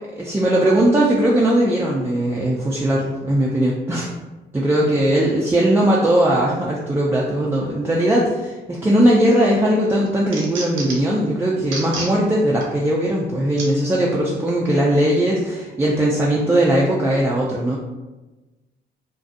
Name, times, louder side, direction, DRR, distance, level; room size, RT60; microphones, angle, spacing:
voice 1, 0.2-4.1 4.5-17.8, right 1 dB, 10° right, -5 dB, 0.3 m, -19 dB
sound 1, 9.3-9.5 9.8-11.1 11.6-12.1 12.6-12.7 13.6-13.7 14.5-14.6, right 3 dB, 80° right, 0.6 m, -31 dB
2.4 x 2.2 x 2.5 m, 1.1 s
cardioid pair, 90°, 20 cm